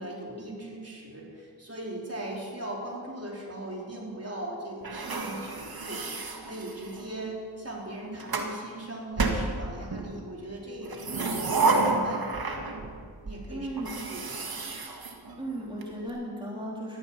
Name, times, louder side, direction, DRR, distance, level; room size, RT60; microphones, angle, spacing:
voice 1, 0.0-12.6 13.2-14.3, right 1 dB, 35° right, -2 dB, 4.4 m, -39 dB
sound 1, 4.8-7.1 7.9-8.5 9.2-10.1 10.8-13.0 13.3-13.4 13.8-15.8, right 3 dB, 55° right, 2.0 m, -30 dB
voice 2, 13.5-13.9 15.4-17.0, right 1 dB, 10° right, -4 dB, 3.5 m, -36 dB
14.5 x 13.0 x 5.8 m, 2.1 s
cardioid pair, 45°, 44 cm